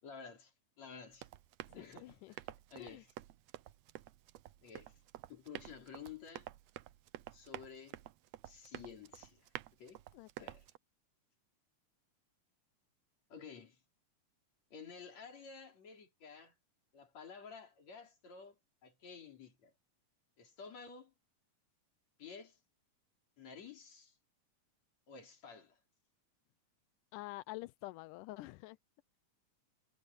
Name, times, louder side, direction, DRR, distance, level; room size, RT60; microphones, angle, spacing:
voice 1, 0.0-1.3 1.7-3.1 4.6-5.0 5.3-6.5 7.3-8.0 8.4-9.5 9.8-10.0 10.4-10.7 13.3-13.8 14.7-16.5 16.9-19.7 20.4-21.1 22.2-22.6 23.4-24.1 25.1-25.8, left 6 dB, 55° left, 4.9 m, -52 dB
Run, 1.1-10.8, right 15 dB, 75° right, 1.7 m, -51 dB
voice 2, 1.8-2.3 2.8-3.0 10.1-10.5 27.1-28.8, left 19 dB, 85° left, 2.1 m, -48 dB
omnidirectional pair, 3.6 m